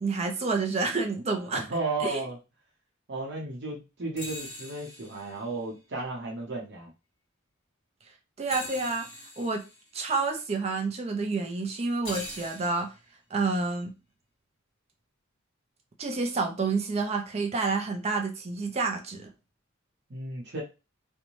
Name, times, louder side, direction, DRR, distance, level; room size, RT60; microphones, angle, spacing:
voice 1, 0.0-1.6 2.0-2.2 8.4-9.1 9.4-9.6 9.9-12.9 13.3-13.9 16.0-19.3, right 3 dB, 30° right, 3 dB, 0.4 m, -29 dB
voice 2, 1.5-2.4 3.1-6.9 20.1-20.6, right 3 dB, 55° right, -1 dB, 0.8 m, -34 dB
sound 1, 4.2-5.9 8.5-9.9 12.0-13.0, left 1 dB, 25° left, 1.3 m, -42 dB
2.6 x 2.1 x 3.0 m, 0.29 s
head